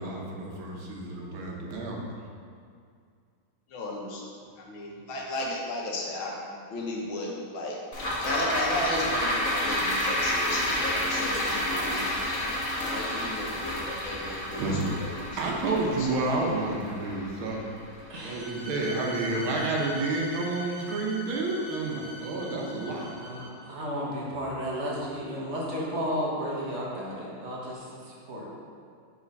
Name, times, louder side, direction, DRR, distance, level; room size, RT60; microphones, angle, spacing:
voice 1, 0.0-2.0 13.9-14.1 14.6-14.9 15.4-17.7 18.2-23.2, right 2 dB, 75° right, -2 dB, 1.7 m, -30 dB
voice 2, 3.7-4.2 4.6-7.8 8.2-12.1 12.9-16.4, left 1 dB, 75° left, -2 dB, 1.7 m, -35 dB
sound 1, 7.9-18.4 18.8-18.9, equal, 45° left, 1.2 m, -30 dB
voice 3, 18.1-18.5 19.0-19.2 23.2-28.4, equal, 45° right, -5 dB, 1.0 m, -33 dB
Bowed string instrument, 18.2-23.7, left 1 dB, 5° left, 1.2 m, -42 dB
5.0 x 4.3 x 5.3 m, 2.2 s
omnidirectional pair, 2.3 m